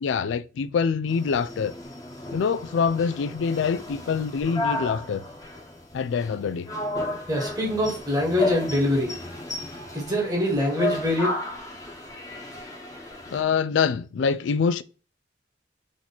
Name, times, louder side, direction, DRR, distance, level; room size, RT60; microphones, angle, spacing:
voice 1, 0.0-1.7 2.3-5.2 5.9-6.7 13.3-14.8, left 6 dB, 85° left, 0.3 m, -25 dB
sound 1, 1.1-13.4, left 1 dB, 20° left, 1.0 m, -33 dB
voice 2, 7.3-9.1 9.9-11.3, left 1 dB, 20° right, 1.4 m, -24 dB
3.8 x 3.0 x 4.0 m
head